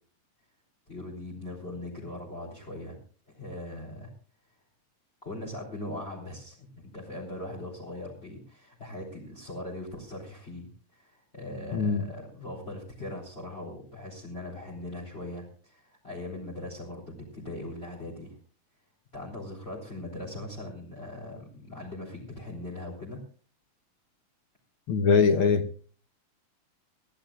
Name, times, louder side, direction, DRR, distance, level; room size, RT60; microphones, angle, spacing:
voice 1, 0.9-3.0 3.3-4.1 5.2-6.7 6.9-18.4 19.1-23.2, left 1 dB, 20° left, -2 dB, 3.8 m, -40 dB
voice 2, 11.7-12.0 24.9-25.7, left 5 dB, 65° left, 8 dB, 1.4 m, -22 dB
23.0 x 15.0 x 2.4 m, 0.42 s
omnidirectional pair, 3.5 m